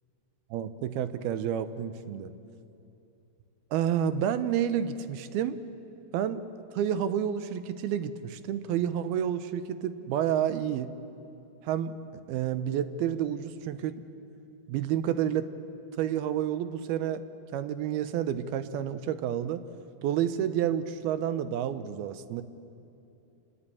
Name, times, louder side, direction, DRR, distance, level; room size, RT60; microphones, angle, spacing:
voice 1, 0.5-2.3 3.7-5.6 6.1-6.5 6.7-10.9 11.6-12.0 12.3-14.0 14.7-15.5 16.0-17.2 17.5-19.6 20.0-22.4, right 9 dB, 80° right, 12 dB, 2.7 m, -29 dB
28.5 x 21.5 x 8.6 m, 2.8 s
omnidirectional pair, 4.5 m